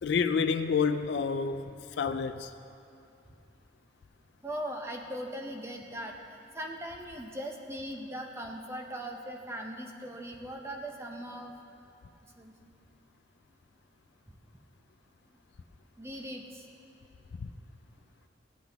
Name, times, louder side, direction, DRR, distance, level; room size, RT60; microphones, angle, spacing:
voice 1, 0.0-1.7 2.0-2.5 17.4-17.5, left 5 dB, 60° left, 0.4 m, -28 dB
voice 2, 4.4-6.2 6.5-11.5 12.4-12.7 16.0-16.6, equal, 15° right, 0.7 m, -39 dB
16.5 x 8.0 x 3.5 m
head